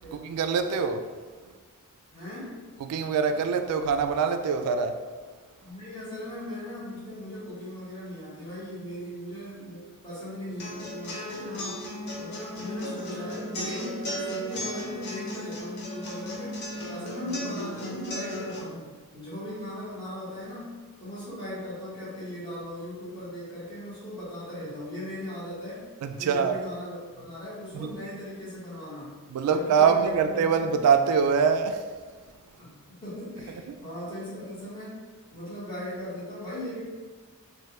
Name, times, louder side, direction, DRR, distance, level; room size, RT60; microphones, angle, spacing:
voice 1, 0.1-1.0 2.9-4.9 26.0-26.6 27.7-27.9 29.3-31.8, right 6 dB, 90° right, 7 dB, 0.3 m, -24 dB
voice 2, 2.1-2.6 5.6-20.7 21.0-25.8 26.2-30.7 32.6-35.0 35.3-36.8, left 1 dB, 20° left, -10 dB, 1.0 m, -38 dB
sound 1, 10.6-18.6, equal, 50° left, 0.5 m, -35 dB
3.1 x 2.2 x 2.9 m, 1.4 s
head